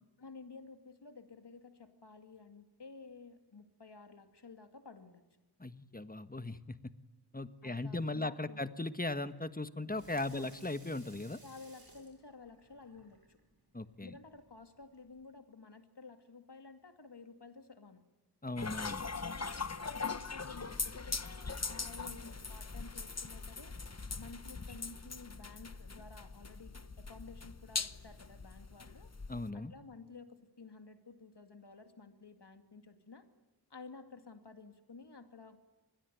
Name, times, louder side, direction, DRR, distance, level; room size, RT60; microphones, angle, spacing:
voice 1, 0.2-5.2 7.6-8.6 10.3-10.5 11.4-13.4 14.0-18.0 19.4-23.7 24.2-29.1 29.5-33.3 33.7-35.6, left 4 dB, 85° left, 7 dB, 2.5 m, -53 dB
voice 2, 5.6-6.8 7.3-11.4 13.7-14.2 18.4-19.1 29.3-29.7, left 2 dB, 20° left, 11 dB, 1.5 m, -38 dB
Water tap faucet / Sink (filling or washing), 9.8-15.3, right 2 dB, 60° right, 6.9 m, -61 dB
sound 1, 18.6-29.5, left 4 dB, 40° left, 1.1 m, -41 dB
26.0 x 21.5 x 9.4 m, 1.1 s
wide cardioid pair, 50°, 40 cm